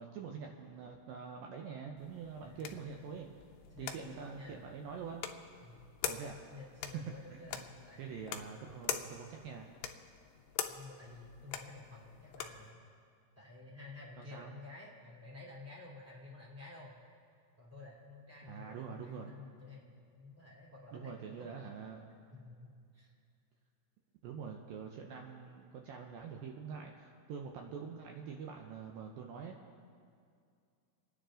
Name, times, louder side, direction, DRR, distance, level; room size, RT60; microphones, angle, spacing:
voice 1, 0.0-3.3 3.8-5.3 6.1-6.4 6.9-7.7 8.0-9.7 14.2-14.5 18.4-19.3 20.9-22.1 24.2-29.6, right 6 dB, 80° right, 2 dB, 2.1 m, -45 dB
sound 1, 2.0-12.7, left 9 dB, 85° left, 1.9 m, -45 dB
voice 2, 2.4-3.1 3.7-4.1 4.3-4.6 5.6-5.9 6.5-8.7 10.7-12.8 13.4-16.9 17.6-21.5 22.3-23.1, left 3 dB, 5° right, -5 dB, 1.9 m, -52 dB
28.5 x 10.0 x 3.8 m, 2.3 s
omnidirectional pair, 4.9 m